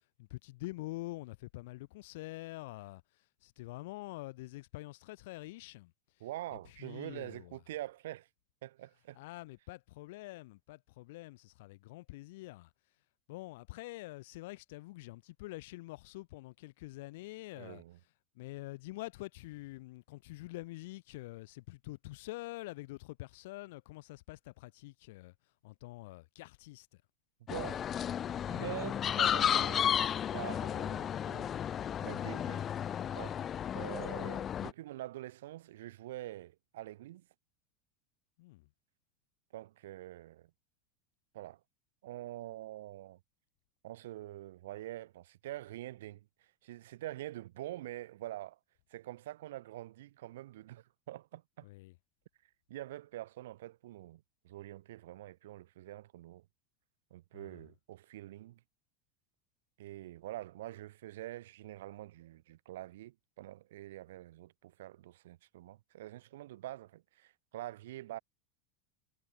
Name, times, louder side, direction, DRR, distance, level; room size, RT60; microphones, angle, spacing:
voice 1, 0.2-3.0 3.4-5.9 6.8-7.6 9.1-12.7 13.3-17.8 18.4-25.3 25.6-27.0 38.4-38.7 51.6-51.9 57.3-57.5, left 20 dB, 70° left, 3.5 m, -46 dB
voice 2, 6.2-8.3 8.6-9.2 17.6-18.0 27.5-27.8 28.5-30.1 30.3-31.6 32.0-32.7 33.1-33.5 33.7-37.3 39.5-40.5 41.3-41.6 42.0-43.2 43.8-48.6 48.9-51.7 52.7-56.5 57.1-58.6 59.8-68.2, right 15 dB, 85° right, 2.3 m, -45 dB
sound 1, 27.5-34.7, left 9 dB, 25° left, 0.5 m, -33 dB
supercardioid pair, 150°, 0 cm